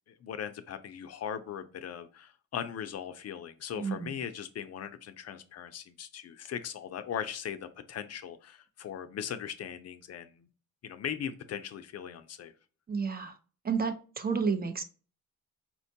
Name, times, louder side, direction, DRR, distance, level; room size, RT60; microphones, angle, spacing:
voice 1, 0.1-10.5 10.8-12.5, left 8 dB, 55° left, 9 dB, 0.4 m, -39 dB
voice 2, 3.8-4.1 12.9-13.4 13.6-14.8, right 5 dB, 30° right, 8 dB, 0.5 m, -31 dB
4.3 x 2.2 x 2.7 m, 0.36 s
cardioid pair, 100°, 31 cm